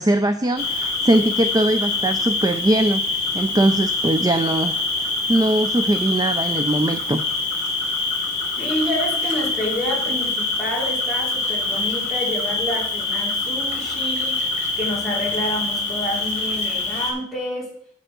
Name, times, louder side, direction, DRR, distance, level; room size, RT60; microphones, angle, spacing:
voice 1, 0.0-7.3, right 1 dB, 15° right, 8 dB, 0.4 m, -21 dB
Cricket, 0.5-17.1, left 3 dB, 35° left, 3.0 m, -25 dB
voice 2, 8.6-17.7, equal, ahead, -7 dB, 3.4 m, -28 dB
8.4 x 6.6 x 6.1 m, 0.64 s
head